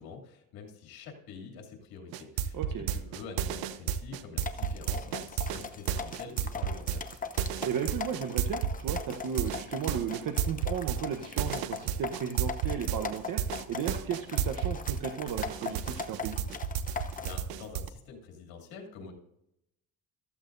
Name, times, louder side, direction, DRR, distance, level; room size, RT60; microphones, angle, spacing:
voice 1, 0.0-2.6 2.9-7.1 16.9-19.1, left 5 dB, 85° left, 1 dB, 2.9 m, -46 dB
sound 1, 2.1-15.0 15.3-17.9, right 9 dB, 90° right, 0.9 m, -31 dB
voice 2, 2.5-3.0 7.6-13.4 13.7-16.4, right 8 dB, 65° right, 5 dB, 1.1 m, -35 dB
sound 2, 4.4-17.4, left 5 dB, 25° left, 0.8 m, -40 dB
14.0 x 14.0 x 2.7 m, 0.83 s
cardioid pair, 105°, 36 cm